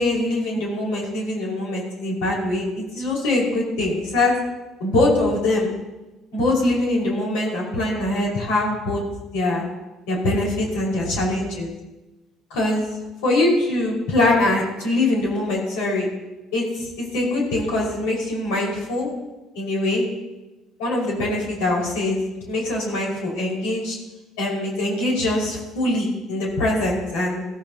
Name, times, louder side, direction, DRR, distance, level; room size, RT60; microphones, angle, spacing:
voice 1, 0.0-2.6 2.9-4.3 4.8-5.7 6.3-9.0 9.3-9.6 10.1-11.7 12.5-12.9 13.2-16.1 16.5-19.1 19.5-20.0 20.8-24.0 24.4-27.5, left 2 dB, 90° left, -3 dB, 5.0 m, -23 dB
16.0 x 14.5 x 2.9 m, 1.1 s
supercardioid pair, 85°, 0 cm